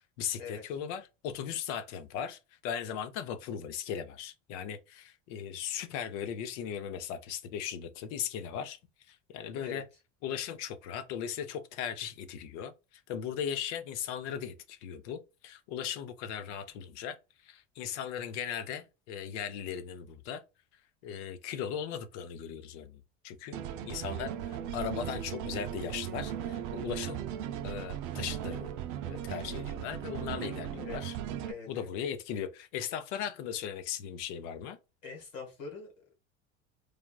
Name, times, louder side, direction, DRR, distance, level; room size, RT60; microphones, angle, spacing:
voice 1, 0.2-8.8 9.1-9.8 10.2-17.2 17.4-20.4 21.0-23.6 23.8-27.2 27.6-28.7 29.1-31.2 31.7-34.8, left 8 dB, 70° left, 0.6 m, -38 dB
sound 1, 23.5-31.5, right 10 dB, 65° right, 0.5 m, -37 dB
voice 2, 31.4-31.9 35.0-35.9, left 5 dB, 90° left, 1.5 m, -43 dB
3.3 x 2.3 x 2.3 m
hypercardioid pair, 85°, 37 cm